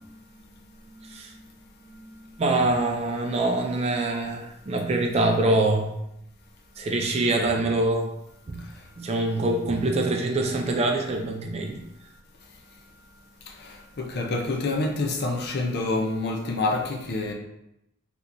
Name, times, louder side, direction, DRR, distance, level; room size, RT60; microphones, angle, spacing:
voice 1, 2.4-6.0 6.8-8.1 8.5-8.6 9.0-11.8, right 2 dB, 30° right, 2 dB, 0.3 m, -24 dB
voice 2, 14.0-17.3, left 2 dB, 50° left, 0 dB, 0.5 m, -27 dB
3.7 x 2.8 x 2.5 m, 0.85 s
head